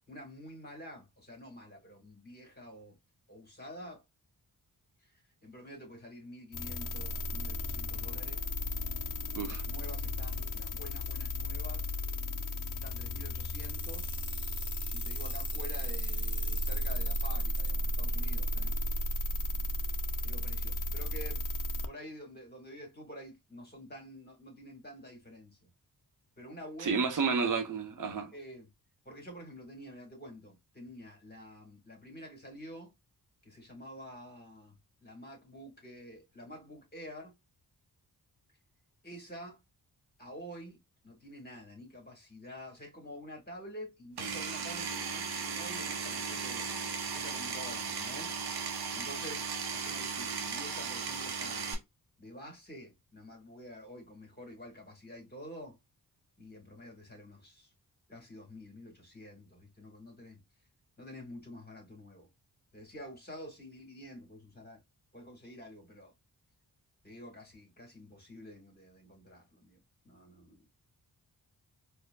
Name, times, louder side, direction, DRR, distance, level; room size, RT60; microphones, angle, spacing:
voice 1, 0.1-3.0 3.3-4.0 5.0-8.4 9.5-11.9 12.7-14.2 14.9-18.8 20.2-21.4 21.9-25.7 26.4-27.0 27.4-27.5 28.3-28.7 29.0-32.9 33.4-37.3 39.0-39.6 40.2-40.8 41.0-46.6 47.1-48.3 48.9-51.7 52.2-55.8 56.4-57.7 58.1-60.4 61.0-62.3 62.7-64.8 65.1-66.1 67.0-69.8 70.0-70.8, equal, 25° left, 2.0 m, -48 dB
sound 1, 6.5-21.9, left 1 dB, 55° left, 0.7 m, -34 dB
sound 2, 13.5-17.7, right 1 dB, 10° right, 1.3 m, -49 dB
voice 2, 26.8-28.3, right 5 dB, 55° right, 1.0 m, -31 dB
Power tool, 44.2-51.7, right 5 dB, 80° right, 1.1 m, -36 dB
4.2 x 2.4 x 2.3 m
cardioid pair, 70°, 38 cm